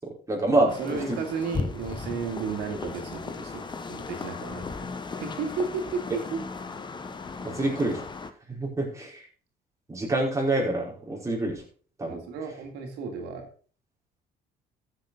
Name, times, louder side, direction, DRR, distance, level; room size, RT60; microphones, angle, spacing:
voice 1, 0.0-1.0 7.4-8.0 8.5-9.3 9.9-11.6 12.0-12.3, right 2 dB, 20° right, -2 dB, 5.2 m, -27 dB
voice 2, 0.6-3.6 3.9-6.4 12.0-13.5, right 5 dB, 85° right, 3 dB, 3.2 m, -33 dB
sound 1, 0.7-8.3, left 4 dB, 25° left, 1.2 m, -36 dB
14.5 x 8.1 x 4.1 m, 0.40 s
cardioid pair, 110°, 17 cm